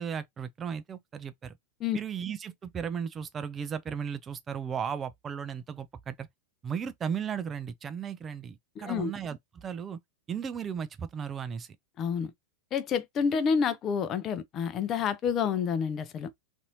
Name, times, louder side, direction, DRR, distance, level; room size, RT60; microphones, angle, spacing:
voice 1, 0.0-1.6 1.9-6.3 6.6-10.0 10.3-11.8, right 7 dB, 25° right, 0.4 m, -35 dB
voice 2, 8.8-9.1 12.0-12.3 12.7-16.3, left 6 dB, 30° left, 0.5 m, -29 dB
4.0 x 2.6 x 2.6 m
figure-of-eight pair, 90°, 0 cm